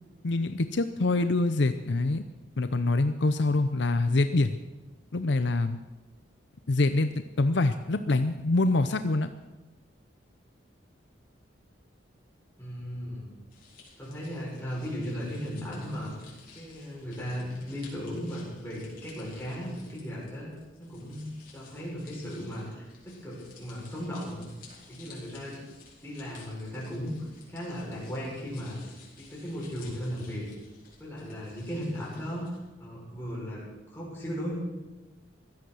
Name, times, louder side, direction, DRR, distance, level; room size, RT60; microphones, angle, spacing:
voice 1, 0.2-2.2 2.6-4.6 5.1-5.8 6.7-9.3, left 2 dB, 65° left, 10 dB, 0.7 m, -25 dB
voice 2, 12.6-13.3 14.0-16.1 16.5-20.5 20.8-21.3 21.5-24.5 24.9-25.6 26.0-28.7 29.2-30.4 31.0-32.4 32.8-33.6 33.9-34.6, equal, 10° left, -6 dB, 6.6 m, -36 dB
sound 1, 13.5-32.6, left 4 dB, 50° left, 4.8 m, -55 dB
16.5 x 12.5 x 6.4 m, 1.1 s
head